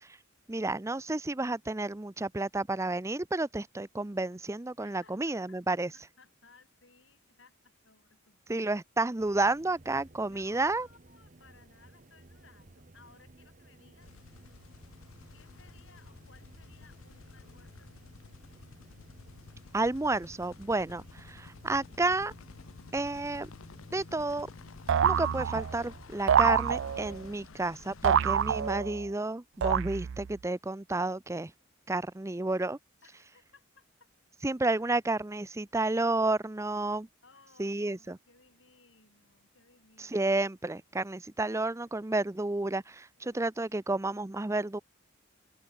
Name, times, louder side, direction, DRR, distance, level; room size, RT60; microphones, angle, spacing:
voice 1, 0.5-5.9 8.5-10.9 19.7-22.3 22.9-23.5 23.9-24.5 25.0-31.5 31.9-32.8 34.4-37.1 37.6-38.2 40.0-44.8, right 2 dB, 15° right, 0.5 m, -31 dB
voice 2, 4.8-8.7 10.2-14.7 15.3-18.5 21.0-21.2 27.3-27.9 33.0-34.1 37.2-40.3 41.4-42.0 43.2-43.5, left 4 dB, 65° left, 6.1 m, -62 dB
sound 1, 9.2-27.4, right 2 dB, 40° right, 1.1 m, -57 dB
sound 2, 14.0-28.7, left 4 dB, 90° left, 0.7 m, -51 dB
sound 3, 24.9-25.8 26.3-27.2 28.0-29.1 29.6-30.3, right 8 dB, 65° right, 0.4 m, -26 dB
head